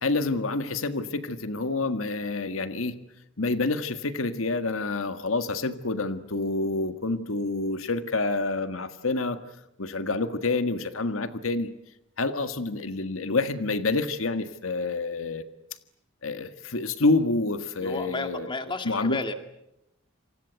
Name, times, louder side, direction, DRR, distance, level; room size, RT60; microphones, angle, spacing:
voice 1, 0.0-3.0 3.4-9.4 9.8-11.7 12.2-15.4 16.2-18.5 18.9-19.3, left 3 dB, 90° left, 9 dB, 1.7 m, -28 dB
voice 2, 17.8-19.3, left 3 dB, 25° left, 7 dB, 2.2 m, -32 dB
28.0 x 25.5 x 8.2 m, 0.84 s
head